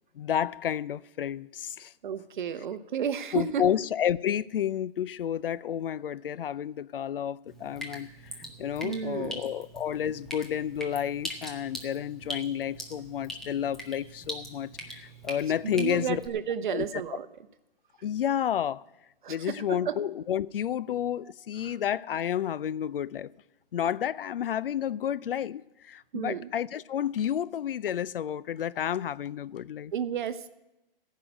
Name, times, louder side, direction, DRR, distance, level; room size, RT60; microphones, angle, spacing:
voice 1, 0.2-1.9 3.3-8.1 8.6-16.2 16.7-16.9 18.0-18.8 19.3-23.3 23.7-29.9, left 9 dB, 65° left, 0.5 m, -30 dB
voice 2, 2.0-3.6 8.8-9.4 15.7-17.3 19.2-20.0 21.6-21.7 26.1-26.5 29.9-30.5, right 7 dB, 55° right, 0.9 m, -32 dB
Drip, 7.5-16.3, equal, ahead, 0.8 m, -42 dB
15.5 x 5.7 x 8.9 m
hypercardioid pair, 155°, 30 cm